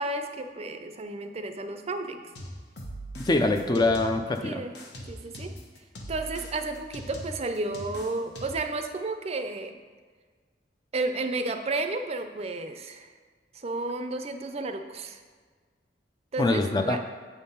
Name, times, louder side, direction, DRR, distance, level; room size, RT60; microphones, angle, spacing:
voice 1, 0.0-2.3 4.4-5.6 6.1-9.8 10.9-13.1 13.5-15.2 16.3-17.0, right 2 dB, 35° right, 7 dB, 0.5 m, -32 dB
sound 1, 2.4-4.4 4.8-8.7, equal, 65° left, 1.0 m, -41 dB
voice 2, 3.2-4.6 16.4-17.0, left 2 dB, 25° left, 6 dB, 0.4 m, -24 dB
8.2 x 3.6 x 5.6 m, 1.5 s
head